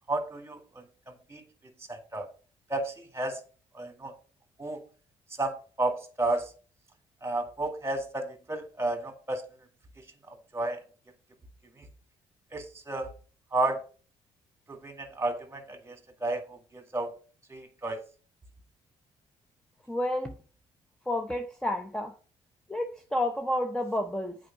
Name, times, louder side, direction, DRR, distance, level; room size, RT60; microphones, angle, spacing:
voice 1, 0.1-0.6 1.3-1.4 1.9-2.3 2.7-3.4 3.7-4.1 4.6-4.8 5.4-6.5 7.2-9.4 10.5-10.8 11.8-11.9 12.5-13.1 13.5-13.8 14.7-17.1 17.5-18.0, right 2 dB, 25° right, 1.9 m, -32 dB
voice 2, 19.9-20.3 21.1-22.1 22.7-24.4, left 1 dB, 5° left, 0.8 m, -30 dB
7.6 x 4.6 x 5.1 m
cardioid pair, 75°, 12 cm